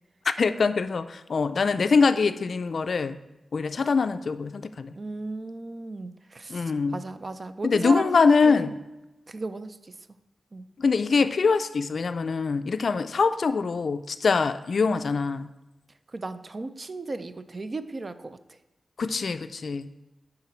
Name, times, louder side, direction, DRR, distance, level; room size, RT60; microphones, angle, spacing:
voice 1, 0.3-3.2 3.5-4.9 6.5-7.0 7.6-8.8 10.8-15.5 19.0-19.9, left 4 dB, 65° left, 11 dB, 0.3 m, -23 dB
voice 2, 4.9-8.8 9.3-9.9 10.5-10.7 16.1-18.4, right 3 dB, 40° right, 11 dB, 0.4 m, -35 dB
9.8 x 3.8 x 4.3 m, 1.0 s
wide cardioid pair, 90°, 0 cm